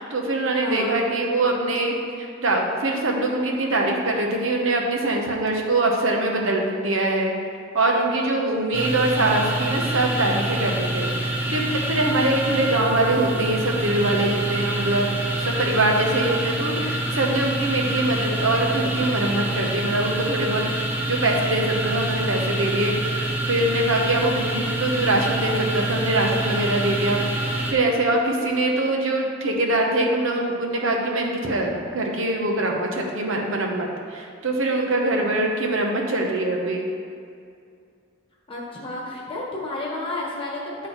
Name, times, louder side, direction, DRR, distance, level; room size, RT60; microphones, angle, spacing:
voice 1, 0.0-7.3 7.7-15.1 15.4-20.6 21.1-27.2 27.5-36.9, right 2 dB, 70° right, 1 dB, 1.0 m, -23 dB
voice 2, 0.6-1.0 38.5-40.9, left 2 dB, 25° left, -3 dB, 1.4 m, -31 dB
sound 1, 8.7-27.7, right 1 dB, 10° right, 0.9 m, -26 dB
10.0 x 4.2 x 4.4 m, 2.3 s
head